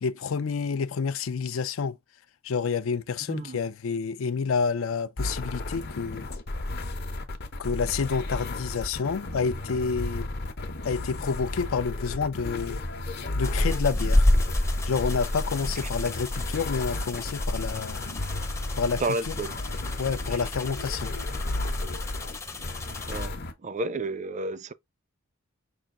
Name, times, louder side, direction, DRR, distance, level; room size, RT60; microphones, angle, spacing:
voice 1, 0.0-2.0 2.4-6.3 7.6-10.3 10.8-12.8 13.4-14.3 14.9-18.1 18.8-19.3 20.0-21.1, left 5 dB, 75° left, 0.4 m, -29 dB
voice 2, 3.3-3.6 19.0-19.6 20.3-20.4 23.1-24.7, right 2 dB, 35° right, 0.4 m, -31 dB
sound 1, 5.2-23.5, left 2 dB, 50° left, 0.8 m, -34 dB
sound 2, 13.4-23.3, left 1 dB, 15° left, 0.6 m, -29 dB
5.6 x 2.4 x 3.6 m
head